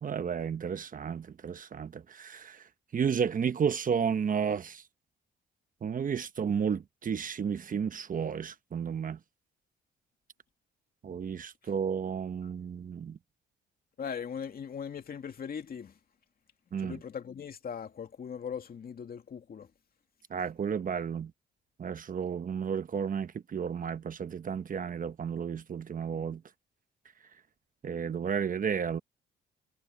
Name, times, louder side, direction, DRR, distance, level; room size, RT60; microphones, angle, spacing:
voice 1, 0.0-4.8 5.8-9.2 11.0-13.2 16.7-17.0 20.3-21.3 21.8-26.4 27.8-29.0, right 7 dB, 45° right, 1.0 m, -32 dB
voice 2, 14.0-15.9 16.8-19.7, left 7 dB, 50° left, 2.6 m, -39 dB
cardioid pair, 90°, 20 cm